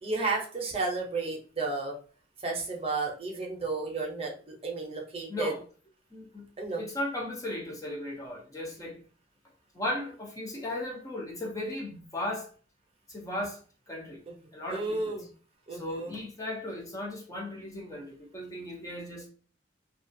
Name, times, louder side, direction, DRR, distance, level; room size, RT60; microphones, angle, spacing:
voice 1, 0.0-2.0 2.4-5.5 6.6-6.8 14.3-14.4 14.7-15.3 15.7-16.1, right 3 dB, 30° right, 0.6 m, -32 dB
voice 2, 5.3-5.6 6.1-6.4 6.8-9.0 9.7-12.5 13.1-13.6 13.9-14.2 14.5-15.1 15.7-19.3, left 1 dB, 20° left, 0.5 m, -36 dB
2.3 x 2.3 x 2.6 m
head